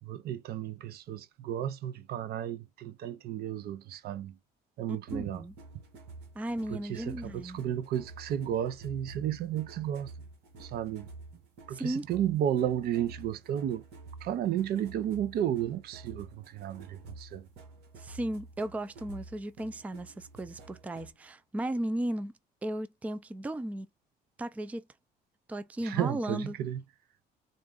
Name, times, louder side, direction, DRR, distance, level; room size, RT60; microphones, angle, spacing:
voice 1, 0.0-4.4 4.8-5.4 6.7-10.1 10.6-11.1 11.7-13.8 14.2-17.5 25.8-26.8, right 10 dB, 65° right, 0.5 m, -33 dB
voice 2, 4.9-5.5 6.4-7.6 11.7-12.1 18.0-22.3 22.6-23.9 24.4-24.8 25.5-26.6, right 1 dB, 10° right, 0.3 m, -35 dB
sound 1, 5.1-21.3, right 3 dB, 85° right, 1.6 m, -50 dB
3.9 x 2.4 x 3.6 m
cardioid pair, 110°, 17 cm